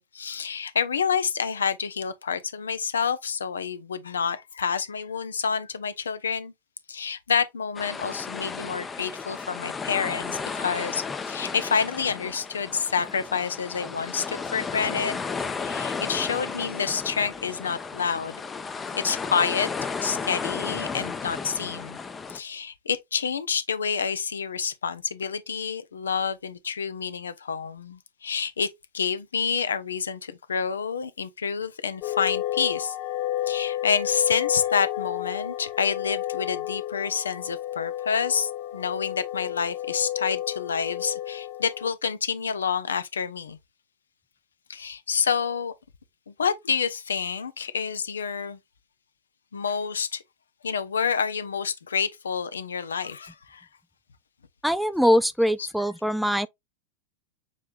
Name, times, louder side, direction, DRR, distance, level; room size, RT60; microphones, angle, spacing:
voice 1, 0.0-6.5 6.9-15.2 15.6-18.4 18.9-19.7 20.0-22.0 22.3-28.7 28.9-33.0 33.5-43.6 44.7-45.7 46.3-48.6 49.5-50.2 50.6-53.7 55.6-55.7, left 6 dB, 70° left, 0.7 m, -28 dB
sound 1, 7.8-22.4, left 5 dB, 15° left, 0.7 m, -34 dB
sound 2, 32.0-41.9, left 13 dB, 40° left, 1.5 m, -31 dB
voice 2, 54.6-56.5, equal, ahead, 0.3 m, -22 dB
6.6 x 3.4 x 2.4 m
figure-of-eight pair, 90°, 0 cm